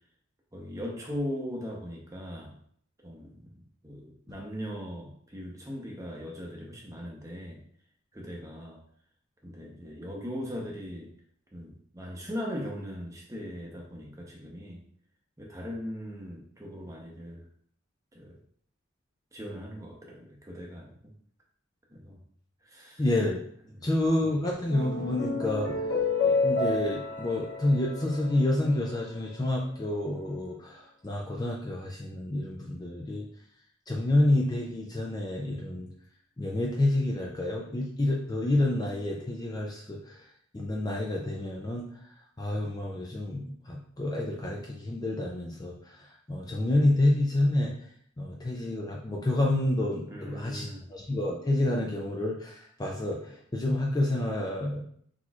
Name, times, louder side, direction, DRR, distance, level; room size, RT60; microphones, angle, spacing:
voice 1, 0.5-2.5 3.0-3.6 3.8-7.6 8.1-8.8 9.4-11.1 11.5-14.8 15.4-17.5 18.1-18.3 19.3-21.0 21.9-22.2 22.6-23.0 23.7-23.9 50.1-50.9, equal, 15° right, -1 dB, 0.7 m, -39 dB
voice 2, 23.0-23.4 23.8-25.8 26.2-33.2 33.9-35.9 36.4-40.3 40.5-41.9 42.4-47.7 48.2-54.8, left 1 dB, 20° left, -1 dB, 0.4 m, -28 dB
sound 1, 24.5-29.0, left 3 dB, 90° left, 1.2 m, -30 dB
6.1 x 3.0 x 2.4 m, 0.63 s
head